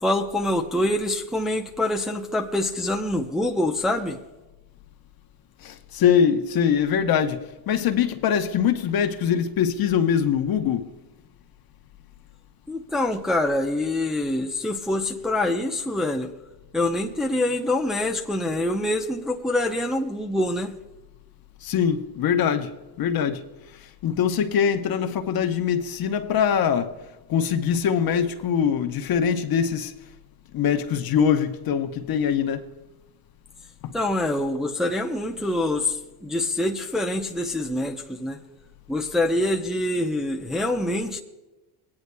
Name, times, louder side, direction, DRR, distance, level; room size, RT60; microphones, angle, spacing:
voice 1, 0.0-4.2 12.7-16.3 16.7-20.8 33.9-36.0 36.2-38.4 38.9-41.2, left 1 dB, ahead, 0.6 m, -25 dB
voice 2, 5.6-7.4 7.7-10.9 21.6-22.7 23.0-23.4 24.0-26.9 27.3-29.9 30.5-32.6 33.8-33.9, left 8 dB, 45° left, 0.9 m, -23 dB
18.0 x 9.6 x 2.2 m
supercardioid pair, 100°, 49 cm